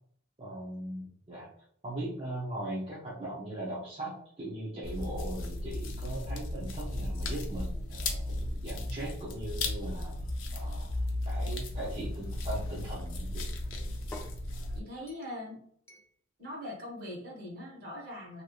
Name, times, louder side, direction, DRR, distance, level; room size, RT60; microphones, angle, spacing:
voice 1, 0.4-1.5 1.8-10.1 10.5-10.9 11.3-13.5, right 1 dB, 30° right, -8 dB, 0.7 m, -39 dB
sound 1, 4.8-14.8, left 1 dB, 70° left, 0.6 m, -35 dB
sound 2, 10.9-13.1 13.7-14.4 15.1-15.4 15.9-16.1, left 1 dB, 15° left, 0.3 m, -52 dB
voice 2, 14.7-15.6 16.4-18.4, left 1 dB, 45° right, -4 dB, 1.4 m, -41 dB
3.2 x 2.7 x 2.4 m, 0.62 s
head